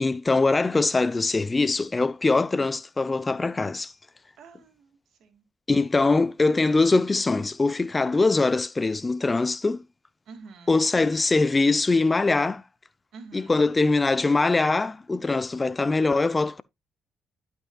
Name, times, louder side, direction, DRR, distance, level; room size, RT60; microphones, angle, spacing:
voice 1, 0.0-3.9 5.7-9.8 10.7-12.6 13.3-16.6, left 3 dB, 25° left, 0.5 m, -22 dB
voice 2, 4.4-5.5 10.3-10.8 13.1-13.6, right 4 dB, 70° right, 2.0 m, -47 dB
11.5 x 5.5 x 2.3 m
hypercardioid pair, 55°, 0 cm